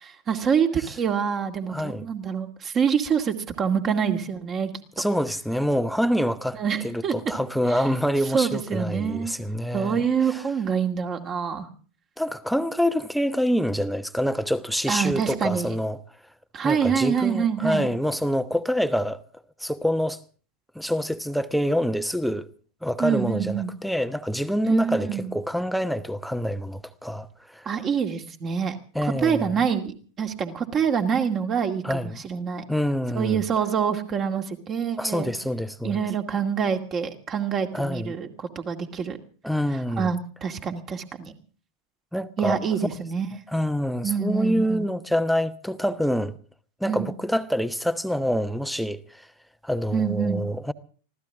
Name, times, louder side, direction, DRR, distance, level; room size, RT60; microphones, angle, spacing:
voice 1, 0.0-4.7 6.5-7.1 8.3-9.3 9.7-11.7 14.9-15.7 16.5-17.9 23.0-23.7 24.6-25.3 27.7-28.8 29.0-32.6 33.2-35.3 35.8-39.2 39.7-41.4 42.4-43.3 44.0-44.9 46.9-47.1 49.9-50.4, right 7 dB, 30° right, 2.3 m, -26 dB
voice 2, 1.7-2.0 5.0-6.6 6.8-10.0 12.2-16.0 16.6-19.2 19.6-20.2 20.7-22.5 22.8-27.3 27.5-27.7 28.9-29.6 31.8-32.2 32.7-33.4 35.0-36.0 37.7-38.2 39.4-40.1 42.1-42.6 43.5-46.4 46.8-49.2 49.6-50.7, equal, ahead, 1.0 m, -26 dB
24.5 x 16.0 x 3.6 m
figure-of-eight pair, 90°, 0 cm